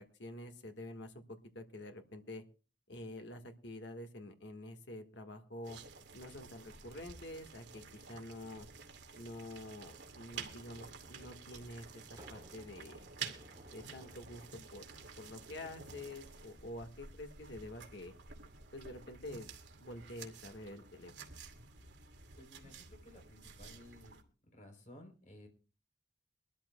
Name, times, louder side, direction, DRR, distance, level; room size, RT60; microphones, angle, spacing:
voice 1, 0.2-1.2 1.5-2.4 2.9-5.8 6.1-7.8 8.1-8.7 9.1-12.0 12.3-13.0 13.7-14.4 14.7-14.9 15.2-18.1 18.7-19.5 19.8-21.1, left 1 dB, 65° left, 6 dB, 1.6 m, -47 dB
sound 1, 5.6-24.2, right 5 dB, 65° right, 2.3 m, -51 dB
sound 2, 11.8-14.6 15.9-16.3, right 1 dB, 20° right, 2.7 m, -59 dB
voice 2, 22.4-24.2 24.5-25.5, left 1 dB, 40° left, 4 dB, 3.5 m, -56 dB
23.5 x 13.0 x 2.3 m, 0.34 s
head